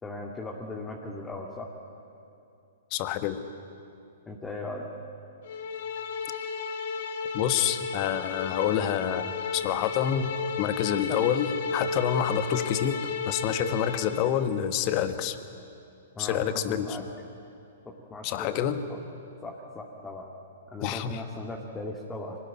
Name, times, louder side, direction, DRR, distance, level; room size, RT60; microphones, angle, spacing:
voice 1, 0.0-1.7 4.3-4.9 16.2-17.0 17.9-19.0 19.4-20.3 20.7-22.4, left 2 dB, 15° left, 0 dB, 2.2 m, -38 dB
voice 2, 2.9-3.5 7.3-15.4 16.2-17.1 18.2-18.8 20.8-21.2, left 9 dB, 40° left, 10 dB, 1.5 m, -28 dB
sound 1, 5.5-14.3, left 5 dB, 60° left, 2.5 m, -33 dB
24.5 x 19.0 x 9.7 m, 2.6 s
hypercardioid pair, 120°, 0 cm